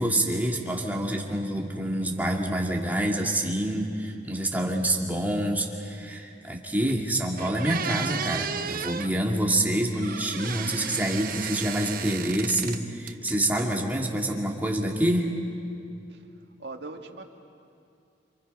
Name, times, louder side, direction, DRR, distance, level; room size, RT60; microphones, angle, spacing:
voice 1, 0.0-15.3, right 1 dB, 10° right, 0 dB, 2.1 m, -27 dB
sound 1, 6.9-7.0 7.4-9.1 10.0-12.8 13.1-13.8, right 7 dB, 55° right, 0.8 m, -34 dB
voice 2, 16.6-17.2, right 3 dB, 75° right, 3 dB, 1.8 m, -40 dB
28.0 x 26.0 x 5.3 m, 2.5 s
head